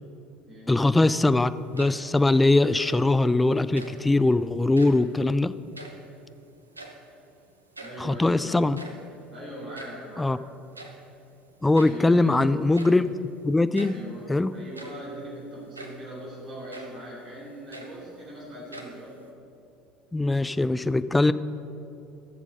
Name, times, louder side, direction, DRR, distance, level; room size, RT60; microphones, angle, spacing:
voice 1, 0.7-5.5 8.0-8.8 10.2-10.4 11.6-13.1 13.4-14.0 14.3-14.5 20.1-21.3, left 2 dB, 10° left, 14 dB, 0.4 m, -21 dB
sound 1, 1.6-2.2 2.6-3.1 3.7-4.1 4.6-5.1 5.5-6.3 6.6-7.2 7.5-7.6 7.7-8.1 8.6-10.1 10.7-11.1 11.7-12.1 12.7-13.1 13.7-14.1 14.6-15.1 15.7-16.1 16.7-17.0 17.5-18.3 18.7-19.3, right 2 dB, 85° right, 0.8 m, -44 dB
voice 2, 7.8-8.6 9.3-10.4 11.8-12.6 13.8-19.2, right 1 dB, 35° right, -6 dB, 3.0 m, -40 dB
14.0 x 7.3 x 5.2 m, 2.7 s
figure-of-eight pair, 65°, 0 cm